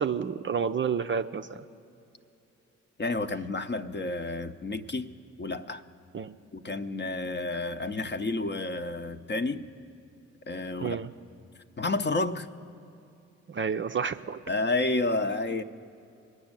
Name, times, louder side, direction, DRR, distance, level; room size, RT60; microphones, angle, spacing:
voice 1, 0.0-1.6 6.1-6.3 10.8-11.1 13.5-14.4, right 6 dB, 35° right, 9 dB, 0.5 m, -30 dB
voice 2, 3.0-5.1 5.4-5.8 6.5-9.6 10.5-11.0 11.8-12.5 14.5-15.6, left 2 dB, 30° left, 9 dB, 0.7 m, -30 dB
19.0 x 6.3 x 8.9 m, 2.8 s
hypercardioid pair, 45°, 35 cm